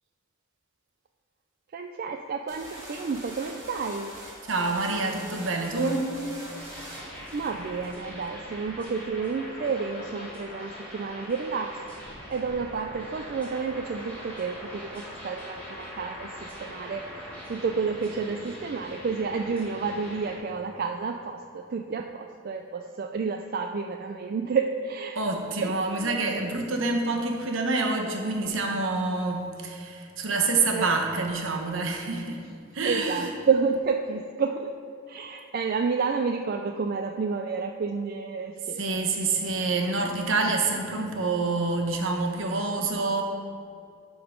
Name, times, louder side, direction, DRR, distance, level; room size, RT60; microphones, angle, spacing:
voice 1, 1.7-4.1 7.0-11.8 12.3-25.2 25.6-26.2 30.7-30.9 32.8-34.7 35.1-38.8, right 5 dB, 45° right, 3 dB, 0.3 m, -30 dB
sound 1, 2.5-7.9, right 1 dB, 15° right, 1.9 m, -43 dB
voice 2, 4.5-6.1 25.1-32.4 32.7-33.4 38.7-43.2, right 3 dB, 70° right, 2 dB, 1.0 m, -27 dB
sound 2, 6.5-20.4, equal, 5° left, 2.1 m, -42 dB
11.5 x 3.8 x 5.0 m, 2.5 s
head